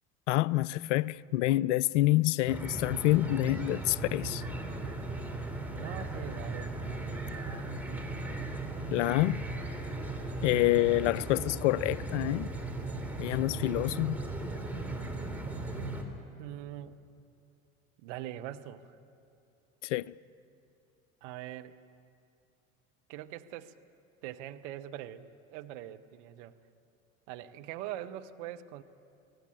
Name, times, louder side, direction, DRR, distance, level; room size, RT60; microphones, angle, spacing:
voice 1, 0.3-4.4 8.9-9.5 10.4-12.5 13.2-14.2 19.8-20.0, left 17 dB, 60° left, 0.5 m, -27 dB
sound 1, 2.5-16.0, right 2 dB, 5° right, 3.3 m, -37 dB
voice 2, 5.7-8.1 12.8-13.7 14.9-15.4 16.4-17.0 18.0-19.0 21.2-21.7 23.1-23.7 24.2-26.6 27.3-28.8, right 12 dB, 55° right, 1.1 m, -43 dB
23.5 x 17.5 x 10.0 m
figure-of-eight pair, 70°, 42 cm